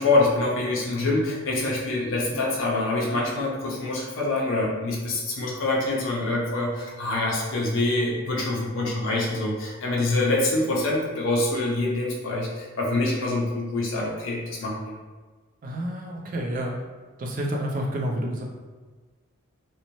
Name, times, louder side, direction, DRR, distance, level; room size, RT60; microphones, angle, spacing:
voice 1, 0.0-14.9, left 2 dB, 60° left, -3 dB, 0.4 m, -25 dB
voice 2, 15.6-16.8 17.2-18.4, equal, 40° right, -1 dB, 0.4 m, -29 dB
2.6 x 2.0 x 2.9 m, 1.3 s
head